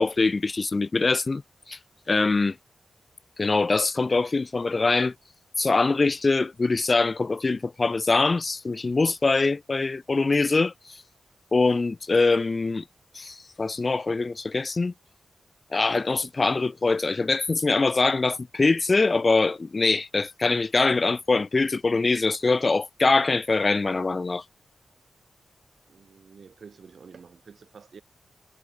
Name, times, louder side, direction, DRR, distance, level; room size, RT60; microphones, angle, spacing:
voice 1, 0.0-1.4 1.7-1.8 2.1-2.6 3.4-5.1 5.6-10.7 11.5-12.8 13.1-14.9 15.7-24.4, left 3 dB, 45° left, 0.6 m, -23 dB
voice 2, 25.9-28.0, right 5 dB, 70° right, 6.9 m, -48 dB
cardioid pair, 55°, 0 cm